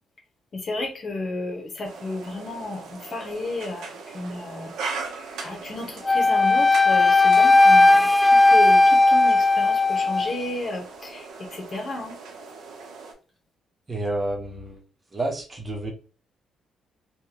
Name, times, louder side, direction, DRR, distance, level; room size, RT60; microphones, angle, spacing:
voice 1, 0.5-4.7 5.4-12.2, left 2 dB, 45° left, 2 dB, 1.3 m, -33 dB
sound 1, 1.8-13.1, right 4 dB, 80° right, 1.0 m, -39 dB
Wind instrument woodwind instrument, 6.1-10.3, left 2 dB, 15° left, 0.3 m, -16 dB
voice 2, 13.9-14.8 15.1-15.9, right 2 dB, 30° right, 1 dB, 1.2 m, -29 dB
3.4 x 2.5 x 3.0 m, 0.36 s
cardioid pair, 90°, 0 cm